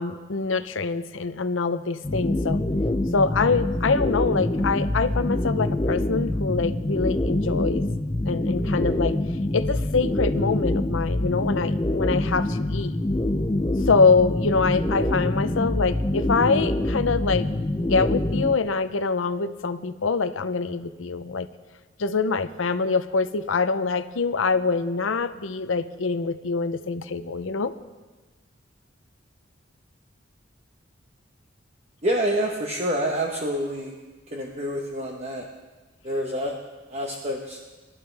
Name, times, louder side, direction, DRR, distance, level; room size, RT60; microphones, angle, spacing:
voice 1, 0.0-2.7 3.1-7.9 8.3-9.2 9.5-13.0 13.9-17.5 17.8-21.5 22.0-27.7, left 4 dB, 80° left, 12 dB, 0.7 m, -24 dB
sound 1, 2.0-18.5, left 1 dB, 20° left, 0.5 m, -25 dB
voice 2, 32.0-33.9 34.3-35.5 36.0-36.5 36.9-37.6, equal, 35° right, 0 dB, 1.1 m, -27 dB
24.5 x 12.5 x 3.4 m, 1.2 s
head